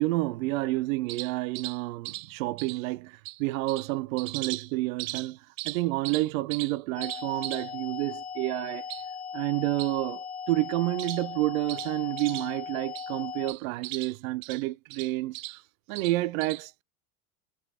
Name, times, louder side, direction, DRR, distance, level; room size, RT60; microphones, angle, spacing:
voice 1, 0.0-9.1 9.3-15.6 15.9-16.8, right 19 dB, 65° right, 0.5 m, -29 dB
sound 1, 7.0-13.5, left 7 dB, 20° left, 0.4 m, -38 dB
4.0 x 3.1 x 2.7 m
hypercardioid pair, 95°, 45 cm